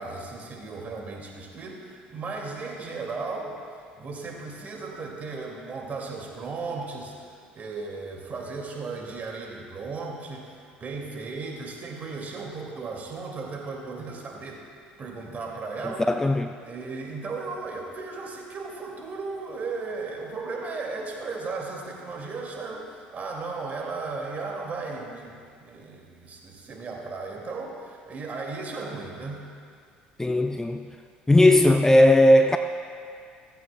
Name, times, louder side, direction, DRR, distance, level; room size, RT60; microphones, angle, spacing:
voice 1, 0.0-3.6 4.0-14.7 15.0-16.1 16.6-29.5, right 3 dB, 35° right, 0 dB, 2.2 m, -36 dB
voice 2, 15.8-16.5 30.2-30.9 31.3-32.6, left 1 dB, 10° left, 7 dB, 0.4 m, -18 dB
15.5 x 15.0 x 2.2 m, 2.2 s
figure-of-eight pair, 60°, 5 cm